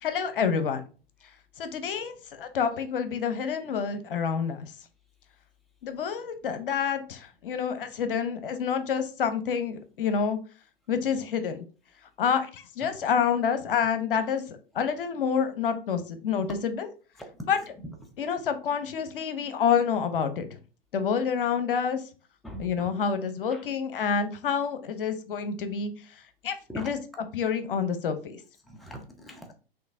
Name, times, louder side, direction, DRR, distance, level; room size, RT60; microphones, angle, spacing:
voice 1, 0.0-0.8 1.6-4.7 5.8-10.4 10.9-11.6 12.2-14.4 14.7-16.8 17.5-17.6 18.2-20.5 20.9-22.0 22.6-25.9 26.4-26.5 26.8-27.0 27.3-28.4, left 6 dB, 65° left, 10 dB, 0.8 m, -28 dB
voice 2, 17.2-18.2 22.4-22.9 23.5-23.6 26.7-27.0 28.6-29.5, right 1 dB, ahead, 3 dB, 0.5 m, -42 dB
5.9 x 2.7 x 2.6 m, 0.36 s
figure-of-eight pair, 105°, 29 cm